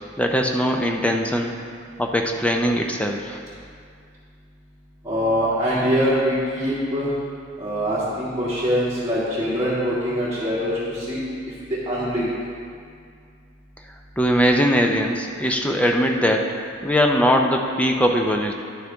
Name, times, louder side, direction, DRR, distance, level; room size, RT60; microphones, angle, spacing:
voice 1, 0.2-1.5 2.0-3.4 14.2-16.5 16.8-18.5, equal, 5° left, 2 dB, 0.5 m, -20 dB
voice 2, 5.0-7.1 7.6-11.2 11.7-12.3, equal, 15° right, -13 dB, 2.0 m, -23 dB
11.0 x 6.5 x 3.5 m, 2.3 s
head